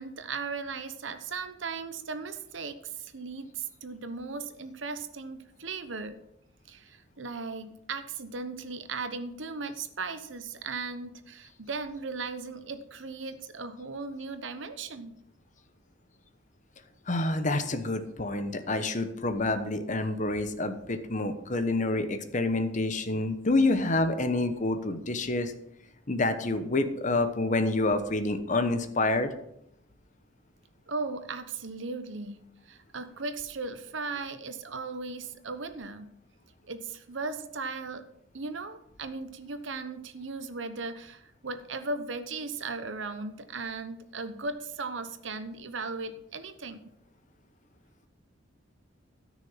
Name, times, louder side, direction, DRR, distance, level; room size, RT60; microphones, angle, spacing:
voice 1, 0.0-6.2 6.7-15.1 30.9-32.4 32.7-36.1 36.7-38.0 38.3-46.8, right 4 dB, 65° right, 10 dB, 1.0 m, -37 dB
voice 2, 17.1-25.5 26.1-29.3, left 2 dB, 40° left, 9 dB, 1.0 m, -28 dB
13.0 x 6.3 x 5.7 m, 0.78 s
head